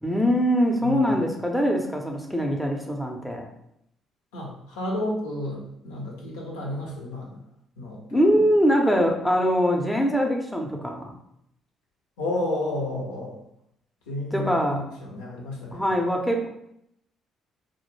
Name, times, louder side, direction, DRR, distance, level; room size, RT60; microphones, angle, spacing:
voice 1, 0.0-3.5 8.1-11.1 14.3-14.8 15.7-16.5, equal, 5° left, 1 dB, 0.5 m, -23 dB
voice 2, 0.8-1.1 4.3-7.4 7.8-8.2 12.2-13.4 14.1-16.2, left 1 dB, 85° left, -2 dB, 0.6 m, -31 dB
2.3 x 2.1 x 3.1 m, 0.77 s
hypercardioid pair, 55°, 0 cm